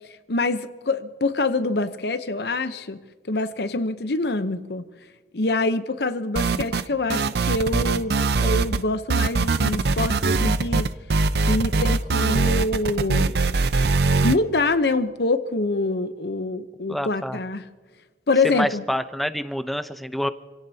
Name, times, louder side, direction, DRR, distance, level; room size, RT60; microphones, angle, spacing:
voice 1, 0.3-3.0 3.3-4.8 5.3-10.9 11.5-13.3 14.2-17.6 18.3-18.8, left 2 dB, 60° left, 11 dB, 0.9 m, -25 dB
sound 1, 6.4-6.9 7.1-8.8 9.1-14.4, right 3 dB, 60° right, 0.6 m, -21 dB
voice 2, 16.9-17.4 18.4-20.3, equal, ahead, 11 dB, 0.6 m, -27 dB
28.5 x 17.5 x 2.9 m, 1.4 s
head